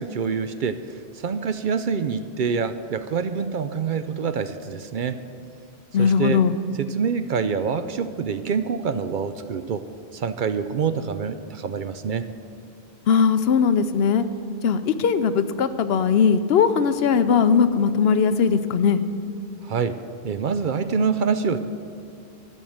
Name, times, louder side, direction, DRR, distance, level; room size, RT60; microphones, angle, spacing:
voice 1, 0.0-5.2 6.0-6.4 6.8-9.8 10.1-12.3 19.6-20.0 20.2-21.6, right 6 dB, 60° right, 11 dB, 0.6 m, -26 dB
voice 2, 5.9-6.6 13.1-14.3 14.6-19.0, left 6 dB, 75° left, 11 dB, 0.8 m, -19 dB
13.5 x 6.4 x 8.6 m, 2.6 s
omnidirectional pair, 1.1 m